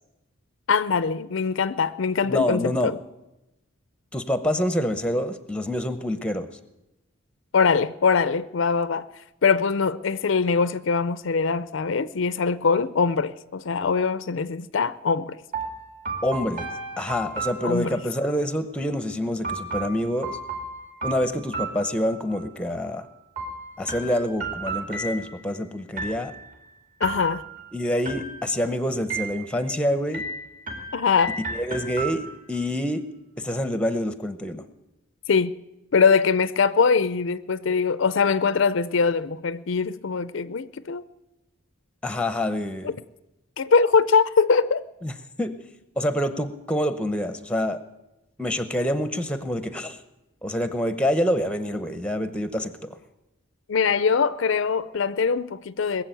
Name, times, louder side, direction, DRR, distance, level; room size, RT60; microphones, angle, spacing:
voice 1, 0.7-3.0 7.5-9.1 9.4-15.4 17.6-18.0 27.0-27.4 30.9-31.3 35.3-35.5 35.9-41.0 42.8-42.9 43.6-44.8 53.7-56.0, left 5 dB, 60° left, 0.4 m, -22 dB
voice 2, 2.2-2.9 4.1-6.5 16.2-16.7 17.0-20.4 21.0-23.1 23.8-26.3 27.7-30.2 31.5-33.0 33.4-34.6 42.0-42.9 45.0-45.6 46.0-47.8 48.4-50.0 50.4-53.0, left 1 dB, 5° left, 0.7 m, -26 dB
sound 1, 15.5-18.3 19.4-22.4 23.4-25.5 26.0-26.6 27.0-27.7 28.0-28.7 29.1-29.7 30.1-32.6, right 3 dB, 40° right, 2.4 m, -34 dB
21.0 x 7.5 x 9.0 m
head